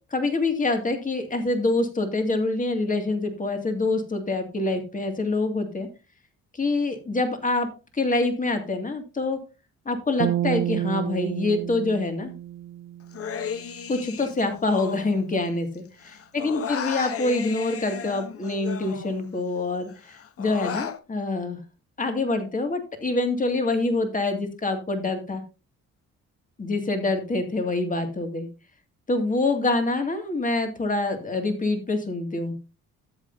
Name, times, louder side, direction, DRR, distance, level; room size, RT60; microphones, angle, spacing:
voice 1, 0.1-5.9 6.5-7.7 7.9-9.4 9.9-12.3 13.9-21.6 22.0-25.4 26.6-28.5 29.1-32.5, left 2 dB, 25° left, 6 dB, 2.3 m, -26 dB
sound 1, 10.2-13.5, right 12 dB, 65° right, 0.5 m, -30 dB
Human voice, 13.1-15.8 16.0-19.5 19.9-21.0, left 7 dB, 50° left, 1.0 m, -35 dB
13.0 x 7.9 x 2.7 m, 0.30 s
cardioid pair, 90°, 30 cm